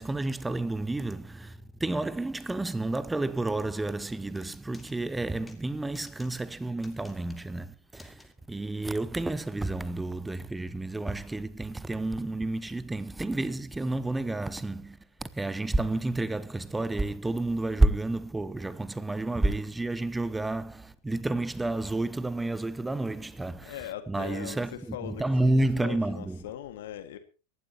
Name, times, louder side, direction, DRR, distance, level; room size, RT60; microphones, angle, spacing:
voice 1, 0.0-23.8 24.1-26.4, right 2 dB, 5° right, 0.8 m, -30 dB
sound 1, 4.3-4.9 5.5-5.6 5.9-6.4 6.8-7.5 8.0-8.2 9.1-9.2, left 3 dB, 10° left, 2.2 m, -53 dB
voice 2, 23.3-27.2, left 11 dB, 55° left, 1.9 m, -41 dB
24.5 x 11.5 x 2.9 m
figure-of-eight pair, 90°, 0 cm